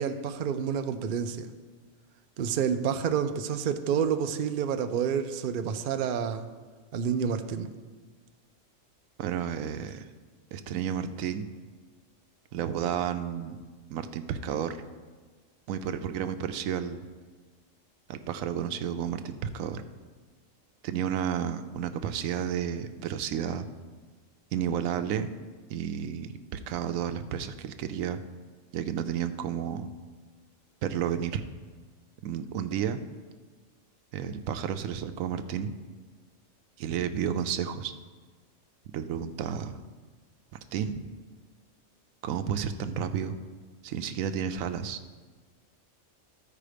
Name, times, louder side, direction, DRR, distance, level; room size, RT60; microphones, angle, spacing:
voice 1, 0.0-1.5 2.4-6.5 6.9-7.7, right 7 dB, 55° right, 8 dB, 0.6 m, -29 dB
voice 2, 9.2-10.1 10.5-11.5 12.5-13.6 13.9-14.8 15.7-17.0 18.1-19.8 20.8-23.6 24.5-25.3 25.7-28.2 28.7-29.9 30.8-31.4 32.2-33.0 34.1-35.7 36.8-37.9 38.9-39.8 40.7-41.0 42.2-43.3 43.8-45.0, right 8 dB, 85° right, 10 dB, 1.0 m, -31 dB
13.5 x 4.7 x 5.0 m, 1.4 s
omnidirectional pair, 1.4 m